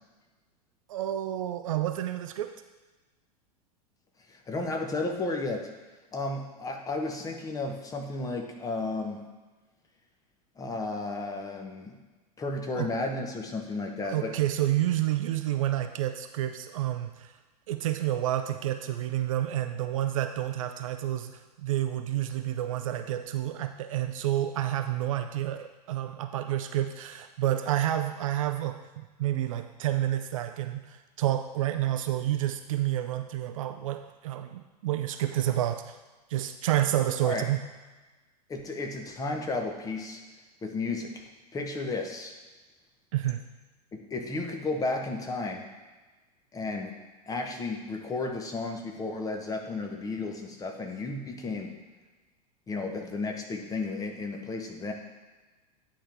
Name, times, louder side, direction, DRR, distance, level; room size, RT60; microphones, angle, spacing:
voice 1, 0.9-2.5 12.8-12.9 14.0-17.3 17.7-28.8 29.2-36.0 36.3-37.6 43.1-43.4, right 12 dB, 55° right, 8 dB, 0.5 m, -29 dB
voice 2, 4.3-5.7 6.1-9.3 10.6-12.0 12.4-14.3 37.2-37.5 38.5-40.2 40.6-41.2 41.5-42.3 43.9-45.6 46.5-47.0 47.3-51.8 52.7-54.9, left 3 dB, 15° left, 3 dB, 1.0 m, -33 dB
10.0 x 3.8 x 4.6 m, 1.2 s
figure-of-eight pair, 90°, 21 cm